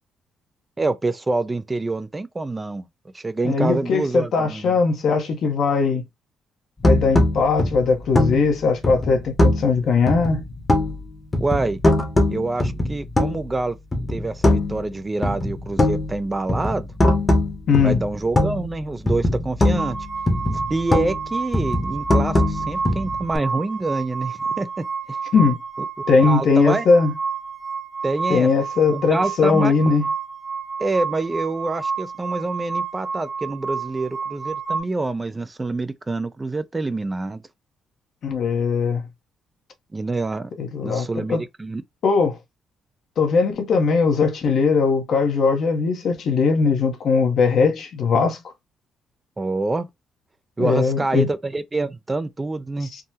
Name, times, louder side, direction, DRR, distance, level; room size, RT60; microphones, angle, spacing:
voice 1, 0.8-2.9 3.1-4.8 11.4-11.8 12.3-13.8 14.1-16.9 17.8-20.0 20.7-25.2 26.0-26.8 28.0-28.5 28.9-29.7 30.8-37.4 39.9-40.5 40.8-41.8 49.4-49.9 50.6-52.9, right 2 dB, 20° right, 0.3 m, -26 dB
voice 2, 3.4-6.0 6.8-10.4 17.7-18.0 25.3-25.6 26.1-27.1 28.3-30.1 38.2-39.0 40.6-41.4 42.0-42.4 43.2-48.4 50.6-51.3 52.9-53.0, left 4 dB, 65° left, 0.8 m, -19 dB
sound 1, 6.8-9.8 10.1-11.1 11.3-13.6 13.9-14.9 15.2-18.8 19.1-21.2 21.5-23.4, left 1 dB, 20° left, 0.9 m, -21 dB
sound 2, 19.8-34.8, right 5 dB, 45° right, 1.2 m, -30 dB
3.5 x 2.1 x 2.8 m
cardioid pair, 90°, 0 cm